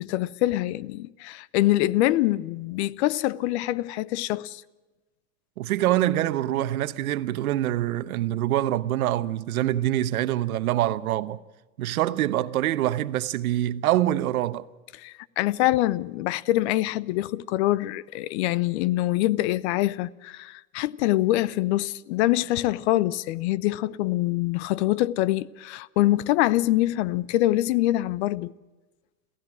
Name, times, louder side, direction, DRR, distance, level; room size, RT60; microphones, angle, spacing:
voice 1, 0.0-4.6 15.0-28.5, left 16 dB, 50° left, 0.7 m, -24 dB
voice 2, 5.6-11.4 11.8-14.7, right 13 dB, 75° right, 1.1 m, -25 dB
27.5 x 15.5 x 6.2 m
supercardioid pair, 145°, 43 cm